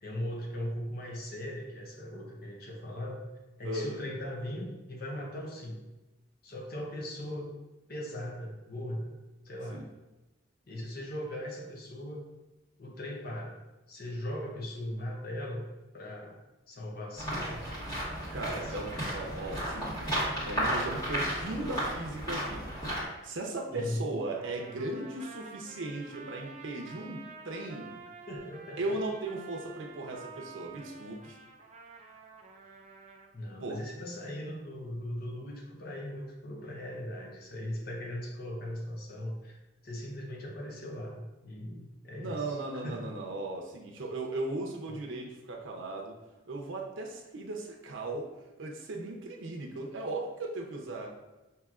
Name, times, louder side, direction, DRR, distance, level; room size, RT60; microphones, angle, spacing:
voice 1, 0.0-3.2 3.6-5.8 6.4-7.5 7.9-9.1 9.4-9.8 10.7-12.2 12.8-13.6 13.9-15.7 15.9-16.4 16.7-17.6 18.4-19.0 23.7-24.1 28.3-29.0 33.3-39.6 39.8-43.1 44.9-45.0, left 1 dB, 55° left, -1 dB, 0.7 m, -39 dB
voice 2, 3.6-4.0 9.7-9.8 18.3-28.0 28.8-31.4 33.6-33.8 42.2-46.2 46.5-48.3 48.6-51.1, right 2 dB, 90° right, 1 dB, 0.6 m, -37 dB
sound 1, 17.2-23.0, equal, 20° left, 1.5 m, -33 dB
Trumpet, 24.3-33.3, right 4 dB, 40° right, 0.4 m, -49 dB
5.7 x 2.7 x 2.4 m, 1.1 s
head